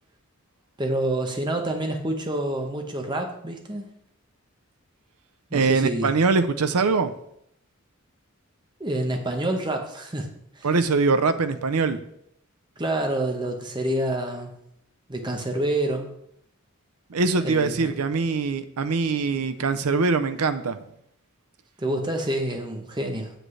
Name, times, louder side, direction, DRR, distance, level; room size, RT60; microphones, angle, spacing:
voice 1, 0.8-3.9 5.5-6.2 8.8-10.3 10.6-10.7 12.8-14.5 15.1-16.1 17.4-17.9 21.8-23.3, right 1 dB, 20° right, 3 dB, 0.9 m, -27 dB
voice 2, 5.5-7.1 10.6-12.0 17.1-20.8, right 4 dB, 90° right, 11 dB, 0.6 m, -23 dB
7.7 x 7.6 x 3.2 m, 0.75 s
head